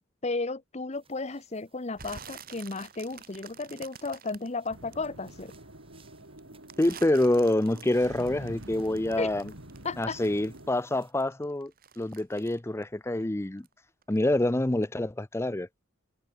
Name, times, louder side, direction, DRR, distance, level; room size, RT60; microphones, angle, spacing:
voice 1, 0.0-5.5 9.2-9.3 9.8-10.2, left 3 dB, 35° left, 0.9 m, -34 dB
sound 1, 0.9-11.1, right 3 dB, 30° right, 6.3 m, -62 dB
sound 2, 1.9-5.5 6.0-10.7 11.0-13.7 14.0-14.4 14.8-14.9, right 7 dB, 45° right, 2.8 m, -49 dB
sound 3, 4.7-10.7, right 1 dB, 75° right, 5.5 m, -47 dB
voice 2, 6.8-9.5 10.0-13.7 14.1-15.7, left 1 dB, 15° left, 0.5 m, -27 dB
head